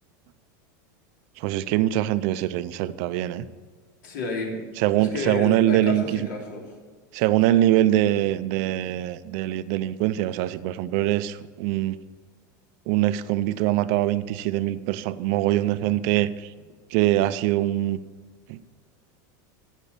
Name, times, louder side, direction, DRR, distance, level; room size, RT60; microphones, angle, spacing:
voice 1, 1.4-3.5 4.8-6.0 7.1-12.0 12.9-16.5 16.9-18.0 18.5-18.6, right 14 dB, 55° right, 13 dB, 0.6 m, -23 dB
voice 2, 4.0-4.6 5.0-6.6 7.5-7.6, left 3 dB, 75° left, -1 dB, 3.5 m, -31 dB
15.5 x 5.3 x 6.9 m, 1.5 s
supercardioid pair, 155°, 10 cm